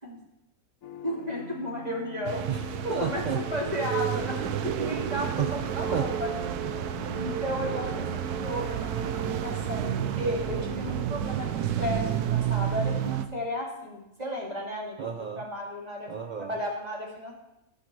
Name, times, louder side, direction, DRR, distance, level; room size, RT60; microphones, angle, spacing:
sound 1, 0.8-11.0, left 4 dB, 65° left, 1.1 m, -44 dB
voice 1, 1.0-2.4 2.8-4.4 4.6-6.4 7.2-9.9 10.2-15.0 15.4-16.1 16.4-17.3, left 1 dB, 25° right, -4 dB, 2.3 m, -34 dB
sound 2, 2.2-13.2, right 10 dB, 90° right, 1.2 m, -30 dB
voice 2, 2.5-3.5 5.4-5.5 5.9-6.1 7.5-8.2 15.0-15.5 16.1-16.6, right 7 dB, 70° right, 4 dB, 0.4 m, -33 dB
14.0 x 6.0 x 4.7 m, 0.89 s
omnidirectional pair, 1.6 m